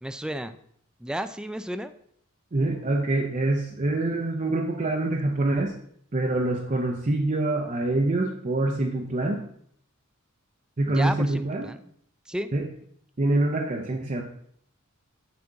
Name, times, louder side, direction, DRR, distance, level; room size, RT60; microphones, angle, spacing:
voice 1, 0.0-0.6 1.0-1.9 10.9-11.7 12.3-12.5, equal, 5° right, 10 dB, 0.3 m, -32 dB
voice 2, 2.5-5.7 6.1-9.5 10.8-11.7 12.5-12.7 13.2-14.2, right 2 dB, 35° right, 0 dB, 0.7 m, -25 dB
7.1 x 6.0 x 3.8 m, 0.65 s
head